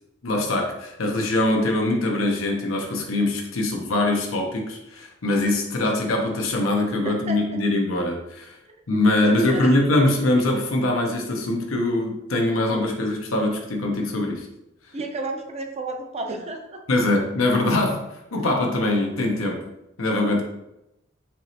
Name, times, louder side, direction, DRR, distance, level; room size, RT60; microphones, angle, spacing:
voice 1, 0.2-8.6 8.9-14.5 16.9-19.6 20.0-20.4, left 2 dB, 85° left, 1 dB, 0.8 m, -23 dB
voice 2, 7.0-7.4 8.9-9.7 14.9-16.8, right 2 dB, 30° right, 3 dB, 0.5 m, -31 dB
4.6 x 3.0 x 2.7 m, 0.88 s
head